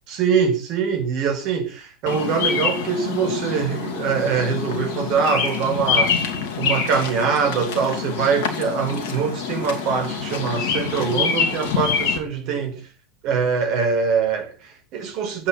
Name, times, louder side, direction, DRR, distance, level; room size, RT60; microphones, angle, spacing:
voice 1, 0.1-6.2 6.6-12.8 13.2-15.5, right 6 dB, 40° right, 4.8 m, -23 dB
Bird vocalization bird call bird song, 2.1-12.2, left 6 dB, 50° left, 2.7 m, -26 dB
14.0 x 9.0 x 5.9 m
figure-of-eight pair, 90°, 0 cm